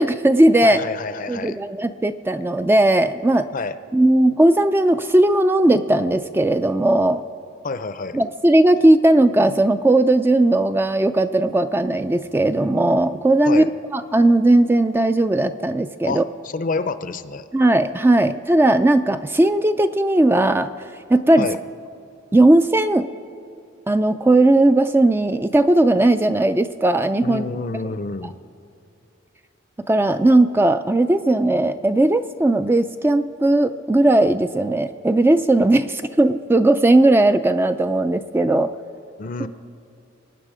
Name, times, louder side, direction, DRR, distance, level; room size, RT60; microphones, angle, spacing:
voice 1, 0.0-0.8 1.3-3.5 3.9-7.2 8.1-13.7 13.9-16.2 17.5-20.7 21.1-21.5 22.3-23.1 23.9-27.4 29.9-38.7, right 1 dB, 10° right, 9 dB, 0.3 m, -17 dB
voice 2, 0.6-1.6 3.5-3.8 7.6-8.2 13.5-13.7 16.0-17.5 21.4-21.6 27.2-28.3 39.2-39.5, left 4 dB, 45° left, 13 dB, 0.5 m, -28 dB
24.5 x 9.4 x 4.9 m, 2.7 s
head